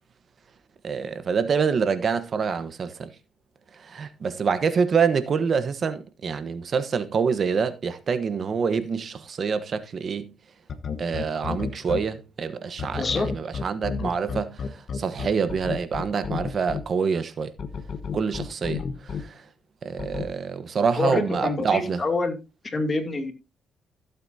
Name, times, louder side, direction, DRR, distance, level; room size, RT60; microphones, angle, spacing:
voice 1, 0.8-3.1 3.8-10.3 11.0-14.6 14.9-17.5 18.1-19.4 19.8-22.0, right 6 dB, 50° right, 1.1 m, -26 dB
sound 1, 10.7-12.0 12.8-16.8 17.6-19.2 20.0-20.2, left 6 dB, 50° left, 1.3 m, -30 dB
voice 2, 13.0-13.3 20.9-22.4 22.6-23.3, left 3 dB, 35° left, 2.6 m, -26 dB
15.5 x 8.1 x 2.8 m
cardioid pair, 90°, 0 cm